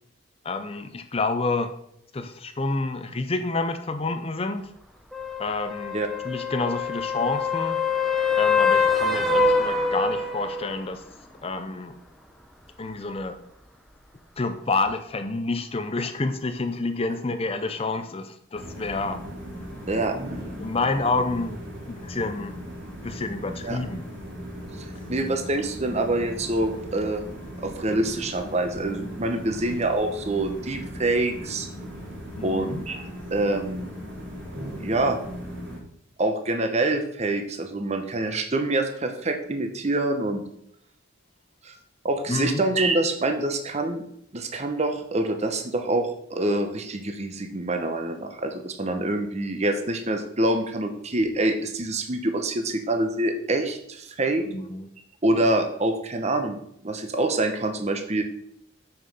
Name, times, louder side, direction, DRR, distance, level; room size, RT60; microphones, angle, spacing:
voice 1, 0.4-1.7 2.1-4.6 5.4-6.0 6.2-7.8 8.4-11.0 11.4-12.0 12.8-13.4 14.4-19.2 20.6-21.6 21.9-22.5 23.0-24.0 32.4-32.8 42.3-42.6 54.4-54.9, left 3 dB, 30° left, 9 dB, 0.6 m, -28 dB
sound 1, 5.1-10.8 14.9-15.0, left 4 dB, ahead, 0.8 m, -24 dB
sound 2, 18.5-35.8, equal, 65° right, 3.4 m, -38 dB
voice 2, 24.8-27.2 27.6-31.7 32.4-33.9 34.8-35.2 36.2-40.4 41.6-41.8 42.0-44.0 44.3-54.4 55.2-56.6 56.8-58.2, right 2 dB, 35° right, 6 dB, 0.9 m, -26 dB
7.2 x 6.4 x 5.6 m, 0.72 s
head